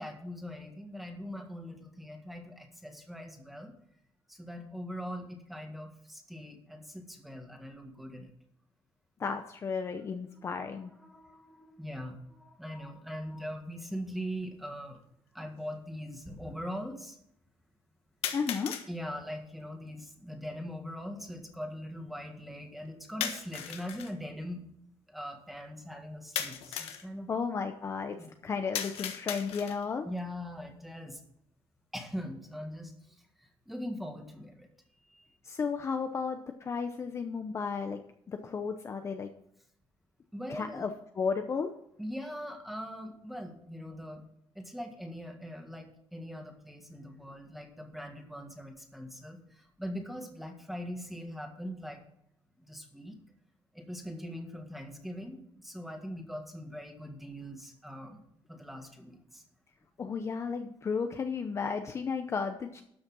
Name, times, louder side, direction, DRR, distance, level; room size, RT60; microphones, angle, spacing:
voice 1, 0.0-3.7 4.3-8.3 11.0-15.0 15.3-17.2 18.9-24.7 25.1-27.3 28.2-28.3 30.0-31.2 31.9-34.7 35.1-35.4 40.3-40.8 42.0-44.2 44.5-52.0 52.6-53.2 53.7-58.2 58.5-59.4, equal, ahead, 4 dB, 1.7 m, -41 dB
voice 2, 9.2-10.9 18.3-18.7 27.3-30.1 35.4-39.3 40.5-40.9 41.2-41.7 60.0-62.8, left 5 dB, 30° left, 6 dB, 0.7 m, -33 dB
sound 1, 14.9-15.0 18.2-18.9 23.2-24.1 26.4-27.1 28.7-29.9, left 9 dB, 90° left, 1.4 m, -36 dB
13.0 x 6.4 x 6.2 m, 0.72 s
cardioid pair, 160°, 10 cm